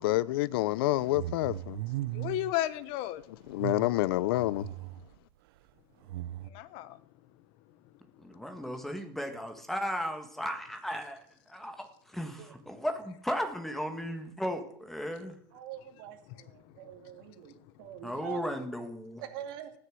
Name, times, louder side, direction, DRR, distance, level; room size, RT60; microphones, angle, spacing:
voice 1, 0.0-1.8 3.5-4.7, left 17 dB, 85° left, 0.6 m, -28 dB
sound 1, 0.8-2.5 3.5-5.2 6.0-6.5, right 15 dB, 85° right, 0.6 m, -38 dB
voice 2, 2.1-3.2 6.4-7.0 16.8-16.9 17.5-17.7, left 14 dB, 50° left, 1.0 m, -34 dB
voice 3, 8.2-11.2 11.5-15.3 18.0-19.2, equal, ahead, 1.7 m, -35 dB
voice 4, 15.5-18.5 19.2-19.7, right 10 dB, 65° right, 2.5 m, -44 dB
14.5 x 9.7 x 7.7 m
supercardioid pair, 160°, 12 cm